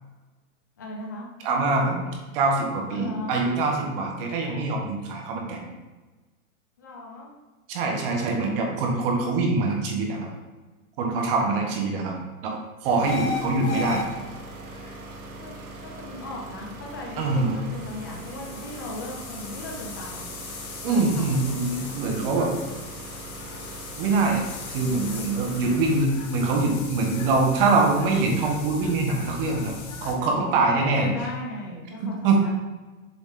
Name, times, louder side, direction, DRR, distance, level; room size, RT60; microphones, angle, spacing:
voice 1, 0.8-1.3 2.9-3.5 5.3-5.8 6.8-7.3 11.2-11.8 12.9-13.5 15.4-15.6 15.8-20.2 20.6-22.2 25.4-26.0 30.0-30.3 30.7-32.5, left 2 dB, 15° left, -1 dB, 0.3 m, -39 dB
voice 2, 1.4-2.1 2.3-5.6 7.7-10.3 11.0-12.1 12.4-12.5 12.8-14.0 17.2-17.6 20.8-22.5 24.0-24.4 24.7-29.7 30.0-31.1 32.2-32.4, right 3 dB, 40° right, 1 dB, 1.2 m, -24 dB
sound 1, 12.8-26.1, right 2 dB, 85° right, 1.5 m, -41 dB
sound 2, 13.0-30.1, left 4 dB, 80° left, 1.4 m, -38 dB
7.2 x 4.0 x 3.8 m, 1.2 s
hypercardioid pair, 150°, 43 cm